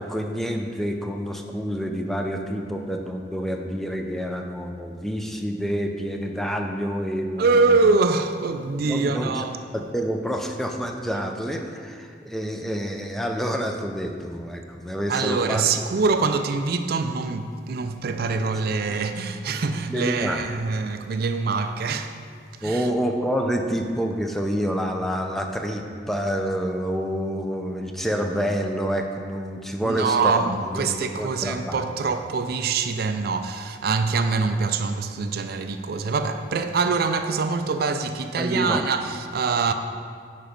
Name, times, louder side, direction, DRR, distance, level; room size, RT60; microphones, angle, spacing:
voice 1, 0.0-7.8 8.6-9.4 9.9-15.7 19.9-20.4 22.6-31.8 38.4-38.8, equal, ahead, 0.5 m, -28 dB
voice 2, 7.4-9.5 15.1-22.2 22.6-22.9 29.8-39.7, right 4 dB, 55° right, 0.4 m, -24 dB
9.0 x 5.2 x 5.2 m
head